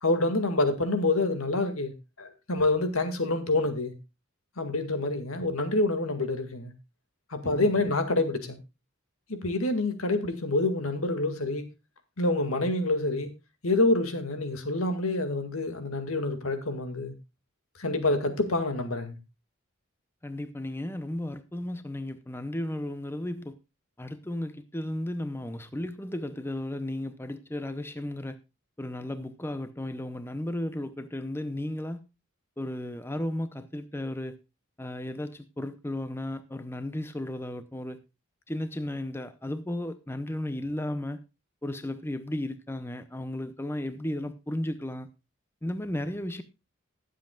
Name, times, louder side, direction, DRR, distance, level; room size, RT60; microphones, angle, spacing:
voice 1, 0.0-3.9 4.6-6.7 7.3-8.6 9.3-11.6 12.2-13.3 13.6-17.1 17.8-19.2, left 2 dB, 85° left, 2.0 m, -27 dB
voice 2, 7.4-7.8 20.2-23.6 24.0-28.4 28.8-32.0 32.6-34.4 34.8-38.0 38.5-41.2 41.6-45.1 45.6-46.4, left 1 dB, 10° left, 0.6 m, -34 dB
20.5 x 7.5 x 2.3 m
head